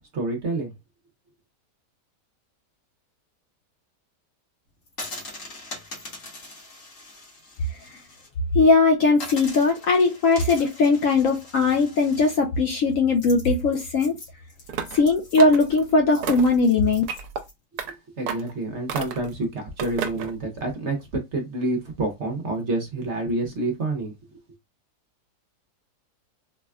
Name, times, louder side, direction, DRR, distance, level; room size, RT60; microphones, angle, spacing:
voice 1, 0.1-0.7 17.8-24.4, right 2 dB, 55° right, 0.9 m, -28 dB
sound 1, 4.9-8.3 8.6-8.7 9.1-17.5, left 2 dB, 55° left, 1.5 m, -42 dB
voice 2, 8.5-14.2 14.9-17.0, left 3 dB, 70° left, 0.8 m, -19 dB
sound 2, 14.7-15.0 15.4-15.8 16.2-16.6 17.1-17.4 17.8-17.9 18.3-18.5 18.9-19.3 19.8-20.3, right 7 dB, 70° right, 1.1 m, -31 dB
4.1 x 2.2 x 2.3 m
omnidirectional pair, 1.8 m